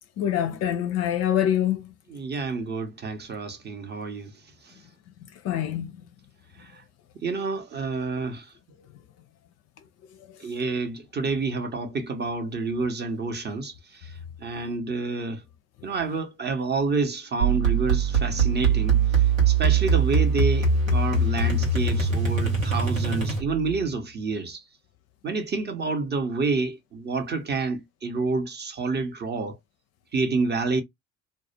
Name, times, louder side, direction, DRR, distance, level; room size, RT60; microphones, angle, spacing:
voice 1, 0.2-1.9 5.4-5.9, left 10 dB, 40° left, 0.4 m, -25 dB
voice 2, 2.1-4.3 4.6-4.8 6.6-6.8 7.1-8.5 10.4-15.4 15.8-24.6 25.2-29.6 30.1-30.8, right 3 dB, 25° right, 0.6 m, -29 dB
sound 1, 17.4-23.8, right 4 dB, 90° right, 0.8 m, -22 dB
2.3 x 2.1 x 2.7 m
figure-of-eight pair, 50°, 39 cm